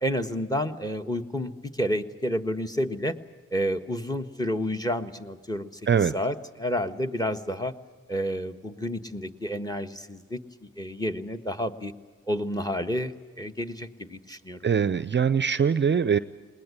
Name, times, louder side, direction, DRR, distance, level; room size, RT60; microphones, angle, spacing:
voice 1, 0.0-3.2 3.5-5.8 6.1-7.7 8.1-11.9 12.3-14.6, equal, 10° left, 9 dB, 1.5 m, -30 dB
voice 2, 14.6-16.2, right 7 dB, 35° right, 14 dB, 0.6 m, -22 dB
20.5 x 19.5 x 9.7 m, 1.4 s
supercardioid pair, 45°, 31 cm